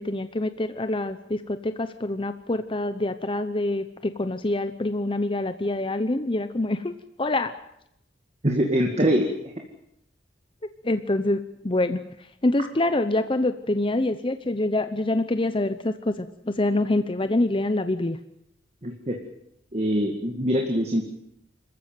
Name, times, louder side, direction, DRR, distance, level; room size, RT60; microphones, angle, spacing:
voice 1, 0.0-6.9 7.2-7.5 10.8-12.0 12.4-18.2, left 2 dB, 30° left, 10 dB, 0.8 m, -26 dB
voice 2, 8.4-9.3 18.8-19.2 19.7-21.1, equal, 35° right, 2 dB, 2.1 m, -23 dB
26.0 x 14.5 x 9.2 m, 0.81 s
head